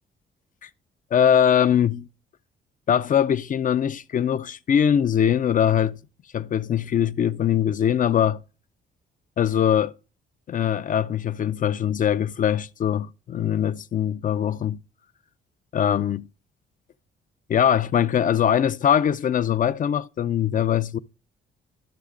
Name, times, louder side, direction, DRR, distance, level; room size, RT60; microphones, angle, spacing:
voice 1, 1.1-2.1 2.9-6.0 6.3-8.4 9.4-9.9 10.5-14.8 15.7-16.3 17.5-21.0, left 9 dB, 45° left, 0.4 m, -22 dB
13.0 x 6.3 x 2.5 m
cardioid pair, 90°, 20 cm